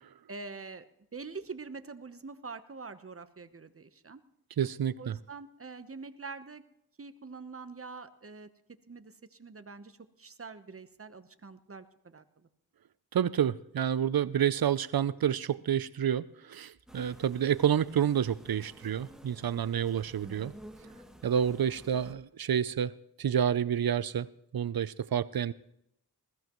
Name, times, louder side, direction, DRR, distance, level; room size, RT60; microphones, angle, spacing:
voice 1, 0.3-0.8 1.1-4.2 5.0-6.6 7.0-8.5 8.9-12.5, right 4 dB, 35° right, 10 dB, 1.0 m, -45 dB
voice 2, 4.6-5.2 13.1-20.5 21.2-22.9 23.2-24.3 24.5-25.5, right 9 dB, 70° right, 18 dB, 0.6 m, -29 dB
sound 1, 16.9-22.1, equal, ahead, 1.5 m, -52 dB
20.5 x 15.0 x 3.1 m, 0.78 s
cardioid pair, 45°, 38 cm